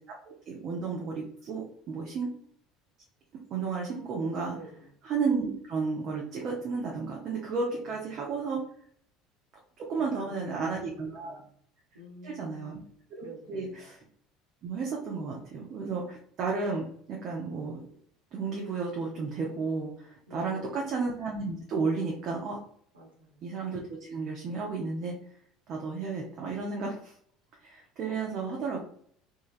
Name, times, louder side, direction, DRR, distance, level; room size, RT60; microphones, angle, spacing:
voice 1, 0.5-2.3 3.5-4.6 5.0-8.6 9.8-11.4 12.2-12.8 13.1-13.9 14.6-17.8 18.3-22.6 23.4-25.1 25.7-27.2 27.6-28.8, right 4 dB, 50° right, -1 dB, 0.6 m, -33 dB
voice 2, 4.5-4.9 7.7-8.4 9.9-11.5 11.9-12.8 13.2-13.8 20.3-20.8 22.9-23.5 27.7-28.4, equal, 80° right, -3 dB, 1.0 m, -50 dB
3.1 x 2.3 x 2.4 m, 0.62 s
figure-of-eight pair, 65°, 0 cm